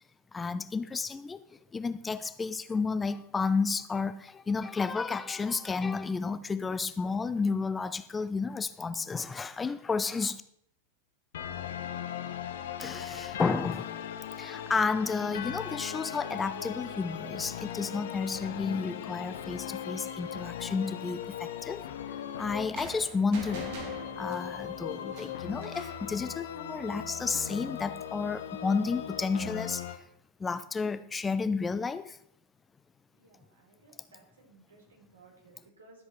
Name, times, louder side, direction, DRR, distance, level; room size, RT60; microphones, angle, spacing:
voice 1, 0.3-1.4 1.7-10.4 12.8-14.0 14.4-21.8 22.4-23.7 24.2-30.0 30.4-32.2, left 4 dB, 15° left, 13 dB, 0.4 m, -31 dB
sound 1, 11.3-30.0, left 9 dB, 60° left, 0.9 m, -39 dB
sound 2, 22.7-26.1, right 3 dB, 50° right, 2.6 m, -45 dB
voice 2, 33.2-36.1, right 3 dB, 70° right, -1 dB, 3.6 m, -59 dB
12.5 x 7.8 x 4.2 m, 0.71 s
figure-of-eight pair, 90°, 0 cm